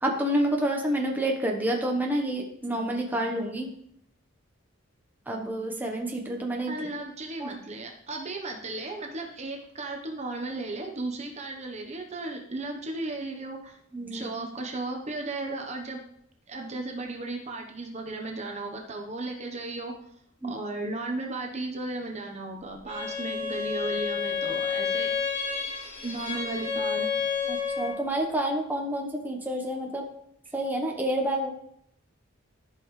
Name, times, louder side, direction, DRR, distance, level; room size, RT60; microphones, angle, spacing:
voice 1, 0.0-3.7 5.3-6.7 7.4-7.6 13.9-14.3 20.4-20.5 27.5-30.0 30.5-31.5, right 1 dB, 10° right, 0 dB, 1.1 m, -28 dB
voice 2, 6.7-13.8 14.1-16.0 16.5-19.9 20.4-25.1 26.0-27.1, right 2 dB, 35° right, 2 dB, 1.0 m, -35 dB
Bowed string instrument, 22.9-28.0, left 6 dB, 35° left, 2.8 m, -30 dB
14.0 x 5.3 x 3.3 m, 0.70 s
head